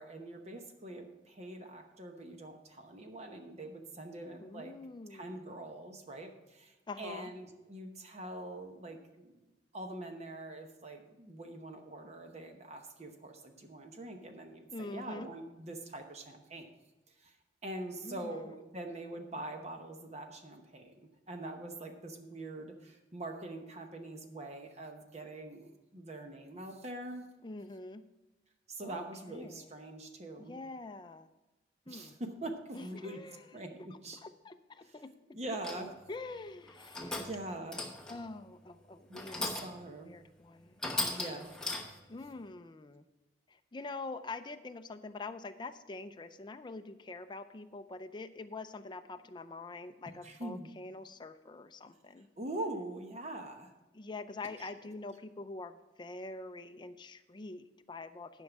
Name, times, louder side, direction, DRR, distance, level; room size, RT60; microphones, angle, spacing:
voice 1, 0.0-4.7 5.1-9.4 9.7-16.7 17.2-17.4 17.6-27.3 28.7-30.6 31.9-33.2 33.5-34.2 34.8-35.0 35.3-35.9 37.1-37.8 39.1-40.1 41.1-41.5 41.9-42.0 50.2-50.7 52.4-53.7 54.6-54.7, right 1 dB, 35° right, 5 dB, 0.9 m, -44 dB
voice 2, 4.4-5.4 6.9-7.3 14.7-15.3 17.9-18.6 27.4-28.0 28.8-29.7 30.4-31.3 31.9-32.2 32.7-33.5 33.9-35.1 35.8-37.3 38.1-41.3 42.1-43.1 43.5-52.3 53.9-58.4, left 3 dB, 25° left, 9 dB, 0.4 m, -45 dB
sound 1, 35.6-36.0 36.7-37.4 37.7-38.3 39.1-39.8 40.3-40.4 40.8-42.1, left 2 dB, 5° left, 0.9 m, -38 dB
11.0 x 5.4 x 6.0 m, 1.1 s
head